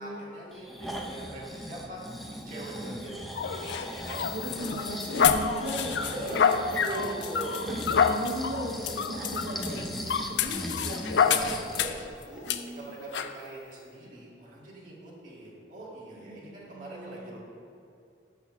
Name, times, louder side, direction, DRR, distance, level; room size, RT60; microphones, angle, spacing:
voice 1, 0.0-2.0 2.3-4.4 4.9-5.1 6.1-6.4 6.8-7.8 11.2-12.5 12.8-17.4, right 2 dB, 45° right, -5 dB, 1.8 m, -42 dB
Breathing, 0.5-11.9 12.4-12.5, equal, ahead, 0.5 m, -39 dB
sound 1, 3.4-12.1 12.5-12.6 13.1-13.3, left 6 dB, 70° left, 0.4 m, -28 dB
voice 2, 4.3-7.3 7.6-11.0 12.4-12.9 16.2-17.2, right 1 dB, 70° right, -3 dB, 0.9 m, -37 dB
5.8 x 5.8 x 6.0 m, 2.7 s
head